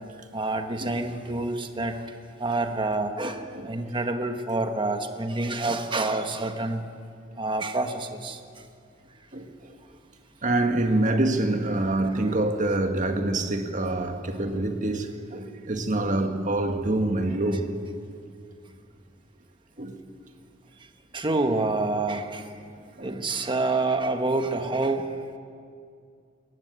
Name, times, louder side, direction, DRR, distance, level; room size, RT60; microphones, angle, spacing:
voice 1, 0.3-2.0 2.4-6.8 7.4-8.4 21.1-22.5 23.0-25.1, right 2 dB, 25° right, 1.3 m, -27 dB
voice 2, 9.3-9.7 10.4-17.7 19.8-20.0 23.0-23.2, right 2 dB, 40° right, 1.6 m, -26 dB
21.5 x 15.5 x 9.4 m
head